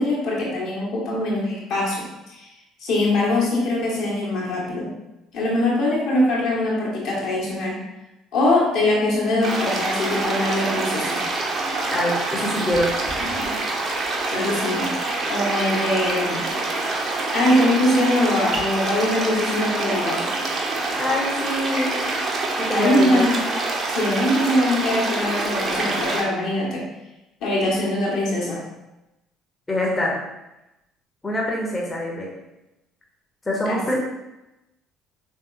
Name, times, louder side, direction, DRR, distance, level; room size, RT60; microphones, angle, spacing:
voice 1, 0.0-2.4 2.8-4.9 5.3-7.8 8.3-11.2 14.3-14.9 15.3-16.4 17.3-20.3 22.7-23.3 23.9-26.9 27.4-28.6 33.7-33.9, left 1 dB, 55° left, -4 dB, 0.9 m, -22 dB
sound 1, 9.4-26.2, right 2 dB, 40° right, 0.6 m, -26 dB
voice 2, 11.9-12.9 13.2-13.4 21.0-22.0 22.6-23.3 29.7-30.2 31.2-32.3 33.5-33.9, left 1 dB, 20° left, -3 dB, 0.7 m, -25 dB
3.5 x 2.7 x 2.5 m, 0.96 s
figure-of-eight pair, 50°, 0 cm